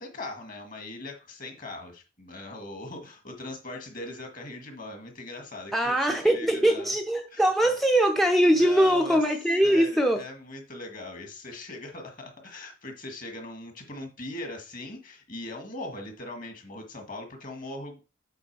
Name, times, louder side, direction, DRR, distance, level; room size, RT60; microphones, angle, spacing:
voice 1, 0.0-6.9 7.3-7.8 8.6-9.2 9.6-18.0, left 2 dB, 40° left, 1.7 m, -40 dB
voice 2, 5.7-10.2, right 1 dB, ahead, 0.5 m, -22 dB
8.0 x 3.7 x 4.7 m
head